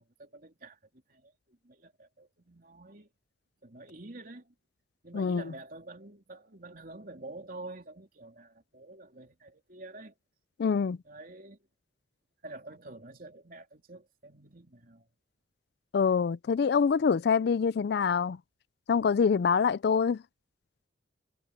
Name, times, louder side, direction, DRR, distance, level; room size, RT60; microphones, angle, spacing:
voice 1, 0.2-0.8 1.1-3.1 3.6-4.5 5.0-10.1 11.0-11.6 12.4-15.1, right 2 dB, 45° right, 3.2 m, -48 dB
voice 2, 5.1-5.5 10.6-11.0 15.9-18.4 18.9-20.2, left 6 dB, 55° left, 0.3 m, -25 dB
head